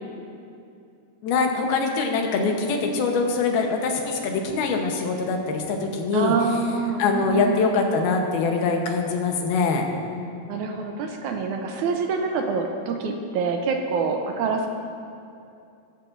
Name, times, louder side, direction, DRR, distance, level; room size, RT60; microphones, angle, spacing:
voice 1, 1.2-6.4 7.0-9.8, left 4 dB, 85° left, 2 dB, 3.0 m, -23 dB
voice 2, 6.1-7.8 10.5-14.7, right 4 dB, 75° right, 3 dB, 1.8 m, -26 dB
16.0 x 15.0 x 2.6 m, 2.6 s
omnidirectional pair, 4.3 m